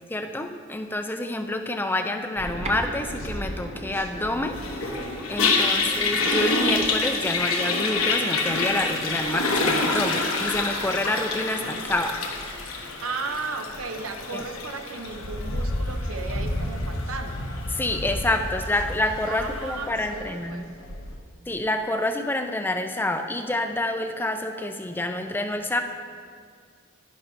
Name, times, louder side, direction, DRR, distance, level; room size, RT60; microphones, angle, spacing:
voice 1, 0.1-12.2 14.3-14.4 17.7-20.7 21.5-25.8, left 1 dB, 10° left, 6 dB, 0.4 m, -28 dB
sound 1, 2.4-21.2, left 1 dB, 60° left, 0.9 m, -36 dB
sound 2, 2.4-10.5, right 2 dB, 30° right, 0.7 m, -42 dB
Toilet flush, 4.6-19.8, left 3 dB, 85° left, 1.1 m, -28 dB
voice 2, 5.5-6.0 12.7-17.4 19.3-20.7, right 4 dB, 80° right, 5 dB, 0.8 m, -35 dB
11.0 x 11.0 x 2.8 m, 2.1 s
head